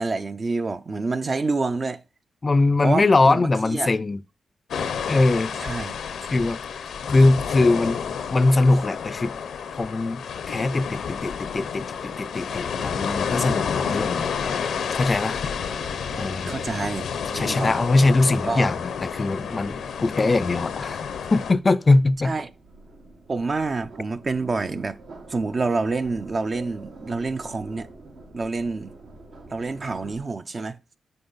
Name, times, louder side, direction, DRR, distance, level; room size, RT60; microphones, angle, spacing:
voice 1, 0.0-2.0 2.8-3.9 5.6-6.0 6.3-6.5 16.5-17.1 17.3-17.8 18.4-18.7 22.2-22.5 23.3-25.0 25.3-27.9 28.3-28.9 29.5-30.8, right 3 dB, 40° right, 0.4 m, -27 dB
voice 2, 2.4-4.2 5.1-5.5 6.3-6.6 7.1-8.0 8.3-9.3 9.8-14.3 14.9-15.4 16.2-16.6 17.3-21.0 21.3-22.3, left 2 dB, 30° left, 0.4 m, -21 dB
sound 1, 4.7-21.5, left 7 dB, 85° left, 0.6 m, -30 dB
sound 2, 11.1-30.2, right 2 dB, 75° right, 1.3 m, -46 dB
6.7 x 4.4 x 4.0 m
cardioid pair, 100°, 0 cm